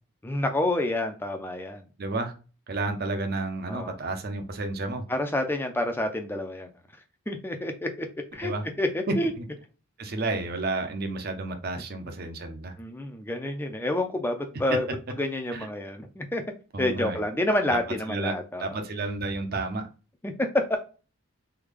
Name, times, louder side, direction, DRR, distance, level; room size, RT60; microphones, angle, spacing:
voice 1, 0.2-1.9 3.6-3.9 5.1-6.7 7.3-8.1 8.3-8.5 8.8-9.3 12.8-14.9 15.2-16.4 16.8-18.8 20.2-20.8, left 1 dB, 10° left, 0.4 m, -28 dB
voice 2, 2.0-2.3 2.7-5.0 8.4-8.7 9.1-9.4 10.0-12.7 14.7-14.8 15.5-15.7 16.7-17.2 17.7-17.8 18.1-19.9, right 3 dB, 45° right, 0.6 m, -31 dB
3.5 x 2.2 x 3.2 m
head